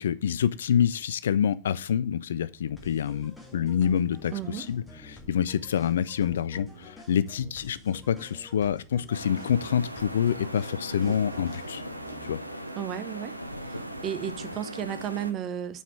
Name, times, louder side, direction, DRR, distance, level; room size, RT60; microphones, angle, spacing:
voice 1, 0.0-11.8 12.2-12.4, left 8 dB, 65° left, 0.3 m, -27 dB
sound 1, 2.8-12.4, left 1 dB, 10° left, 1.7 m, -49 dB
voice 2, 4.3-4.6 12.8-13.4 13.6-15.8, right 10 dB, 35° right, 0.6 m, -33 dB
sound 2, 9.1-15.3, equal, 90° right, 0.6 m, -38 dB
5.5 x 4.7 x 4.4 m
figure-of-eight pair, 90°, 0 cm